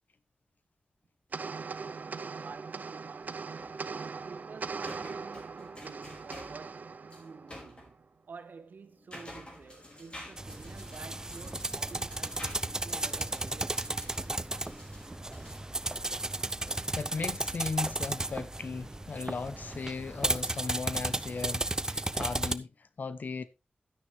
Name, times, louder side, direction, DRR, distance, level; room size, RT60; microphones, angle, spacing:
sound 1, 1.3-8.0, right 4 dB, 65° right, 0.7 m, -40 dB
voice 1, 2.3-3.5 3.8-13.9, right 5 dB, 80° right, 1.4 m, -50 dB
sound 2, 3.2-8.0 8.7-17.7, left 1 dB, 35° left, 5.0 m, -51 dB
sound 3, 10.4-22.5, right 2 dB, 20° right, 0.7 m, -34 dB
voice 2, 16.9-23.5, left 4 dB, 70° left, 0.8 m, -37 dB
12.5 x 9.8 x 3.2 m
wide cardioid pair, 100°, 3 cm